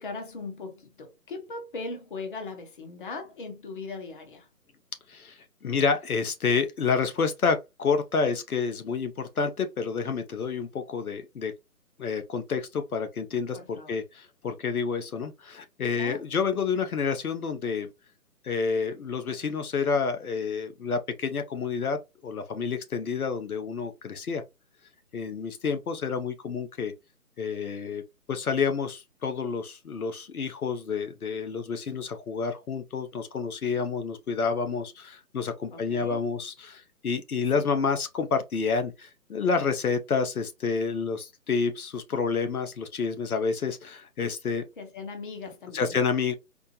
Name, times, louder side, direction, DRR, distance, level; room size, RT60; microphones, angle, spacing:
voice 1, 0.0-4.5 13.5-14.0 15.9-16.2 35.7-36.2 37.5-37.7 44.8-45.9, left 3 dB, 35° left, 0.8 m, -39 dB
voice 2, 5.1-11.5 12.0-17.9 18.4-22.0 22.2-24.4 25.1-26.9 27.4-28.0 28.3-44.6 45.7-46.3, left 5 dB, 65° left, 0.8 m, -29 dB
4.2 x 2.0 x 2.8 m
figure-of-eight pair, 150°, 46 cm